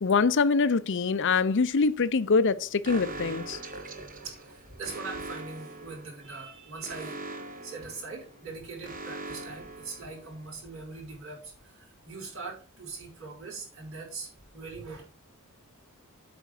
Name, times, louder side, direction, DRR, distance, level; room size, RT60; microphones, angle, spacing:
voice 1, 0.0-3.6, left 4 dB, 55° left, 0.6 m, -24 dB
Alarm, 2.8-10.6, right 2 dB, 40° right, 1.4 m, -42 dB
voice 2, 4.2-7.2 7.6-15.0, right 4 dB, 65° right, 4.9 m, -41 dB
8.3 x 5.2 x 6.1 m
head